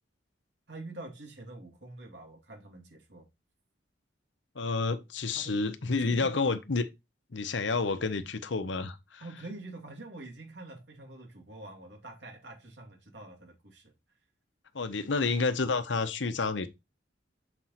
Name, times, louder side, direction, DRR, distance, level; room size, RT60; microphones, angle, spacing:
voice 1, 0.7-3.3 5.3-5.5 5.9-6.6 9.2-13.9, right 2 dB, 65° right, 2.5 m, -46 dB
voice 2, 4.5-6.8 7.3-9.2 14.7-16.7, left 4 dB, 70° left, 0.8 m, -29 dB
6.8 x 4.5 x 4.1 m
head